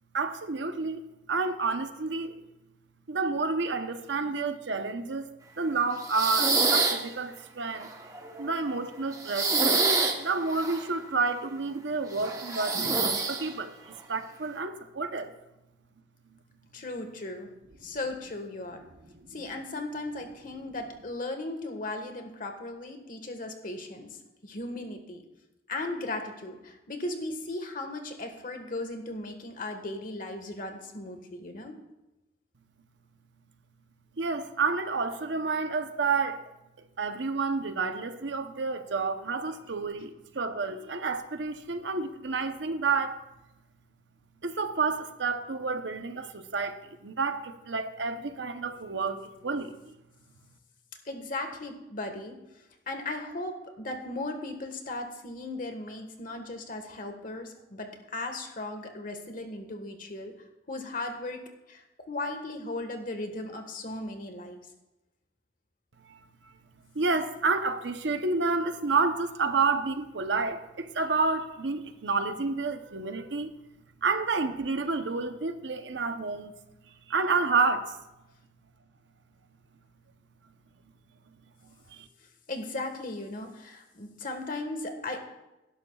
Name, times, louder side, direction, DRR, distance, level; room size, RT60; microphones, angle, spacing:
voice 1, 0.1-2.4 3.1-5.3 5.6-7.9 8.4-9.8 10.2-15.3 19.1-19.4 34.1-36.5 36.8-43.2 44.4-49.9 66.0-66.5 66.9-73.6 74.0-76.5 77.1-78.0 81.9-82.1, right 4 dB, 80° right, 0.9 m, -30 dB
sound 1, 6.0-7.0 7.8-8.8 9.1-10.9 12.2-13.5, right 3 dB, 20° right, 1.1 m, -26 dB
voice 2, 16.7-17.5 17.8-18.8 19.3-24.1 24.4-25.2 25.7-31.7 51.0-52.4 52.9-60.3 60.7-61.4 61.7-64.6 82.5-85.3, left 2 dB, 50° left, 1.6 m, -37 dB
18.5 x 11.0 x 2.4 m
head